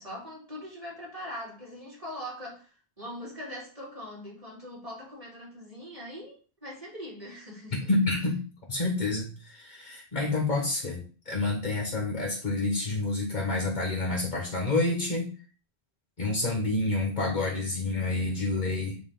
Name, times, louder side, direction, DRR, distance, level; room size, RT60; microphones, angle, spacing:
voice 1, 0.0-7.9, equal, 35° right, 2.9 m, -41 dB
voice 2, 7.9-8.4 8.7-15.3 16.2-19.0, left 2 dB, 45° left, 1.5 m, -28 dB
9.4 x 3.2 x 3.8 m
omnidirectional pair, 1.1 m